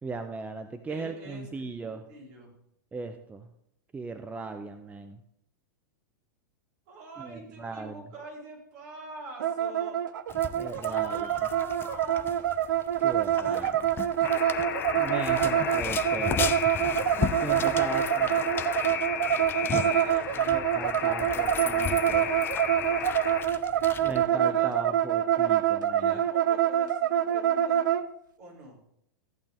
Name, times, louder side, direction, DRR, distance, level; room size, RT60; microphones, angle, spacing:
voice 1, 0.0-2.0 2.9-3.5 3.9-5.2 7.2-7.9 10.5-11.3 13.0-13.7 15.0-16.5 17.4-18.3 20.5-22.3 24.0-26.1, right 4 dB, 15° right, 8 dB, 0.7 m, -37 dB
voice 2, 0.9-2.5 6.9-10.0 10.8-12.5 13.4-13.7 17.4-18.4 19.3-20.5 23.7-24.8 25.9-28.0 28.4-28.8, right 3 dB, 60° right, -3 dB, 4.7 m, -44 dB
sound 1, 9.4-28.0, right 11 dB, 75° right, 0.6 m, -26 dB
sound 2, 10.3-24.3, left 8 dB, 20° left, 0.5 m, -37 dB
Alarm, 14.2-23.4, left 8 dB, 75° left, 1.6 m, -34 dB
14.5 x 8.7 x 3.6 m, 0.73 s
hypercardioid pair, 110°, 10 cm